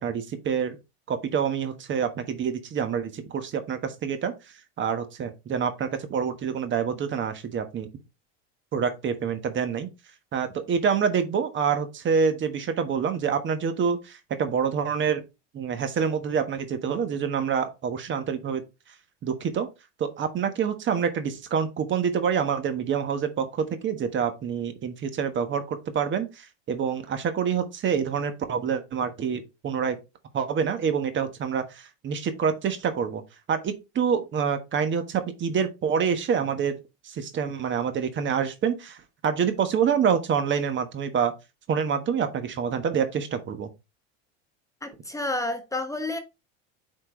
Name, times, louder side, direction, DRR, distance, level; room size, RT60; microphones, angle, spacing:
voice 1, 0.0-0.8 1.1-4.3 4.8-7.9 8.7-9.9 10.3-15.2 15.5-18.6 19.2-19.7 20.0-30.0 30.3-33.2 33.5-36.8 37.0-39.0 39.2-41.3 41.7-43.7, right 7 dB, 35° right, 1.3 m, -27 dB
voice 2, 44.8-46.2, left 2 dB, 10° left, 0.9 m, -30 dB
8.2 x 4.4 x 3.1 m
supercardioid pair, 105°, 32 cm